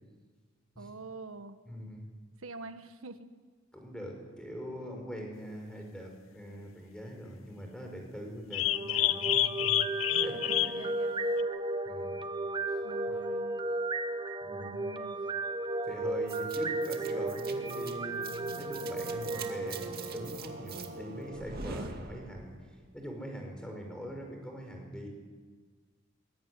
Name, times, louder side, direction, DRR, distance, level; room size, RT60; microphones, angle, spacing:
voice 1, 0.8-1.6 2.4-3.3 10.5-11.5 12.8-13.6 14.7-15.2, right 3 dB, 85° right, 9 dB, 1.4 m, -46 dB
voice 2, 1.7-2.1 3.7-9.9 10.1-10.9 11.9-12.1 14.4-14.8 15.8-22.5 22.9-25.1, equal, 5° left, 2 dB, 5.7 m, -43 dB
sound 1, 8.5-10.9 11.4-11.5, left 13 dB, 80° left, 0.8 m, -28 dB
sound 2, 8.6-20.7, right 2 dB, 20° right, 1.1 m, -34 dB
sound 3, 16.3-22.6, right 2 dB, 50° right, 2.3 m, -42 dB
23.5 x 21.5 x 9.9 m, 1.5 s
head